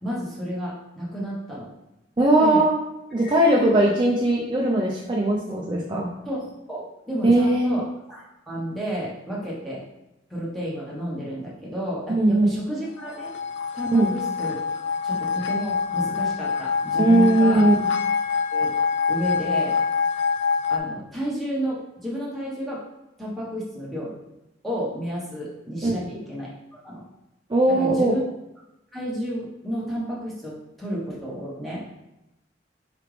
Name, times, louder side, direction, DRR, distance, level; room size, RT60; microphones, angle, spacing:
voice 1, 0.0-1.7 2.4-2.6 3.2-3.8 6.2-9.8 10.3-13.3 13.7-14.6 15.0-17.7 18.5-18.7 19.1-19.8 20.7-22.8 23.2-24.2 24.6-26.5 26.8-27.0 27.7-28.2 28.9-31.9, equal, ahead, -7 dB, 1.2 m, -31 dB
voice 2, 2.2-2.7 3.1-6.1 7.2-7.8 12.1-12.5 13.9-14.1 17.0-17.9 25.8-26.0 27.5-28.1, right 1 dB, 25° right, -3 dB, 0.5 m, -19 dB
sound 1, 13.0-20.8, left 5 dB, 70° left, 0.4 m, -25 dB
4.8 x 3.4 x 3.2 m, 0.92 s
head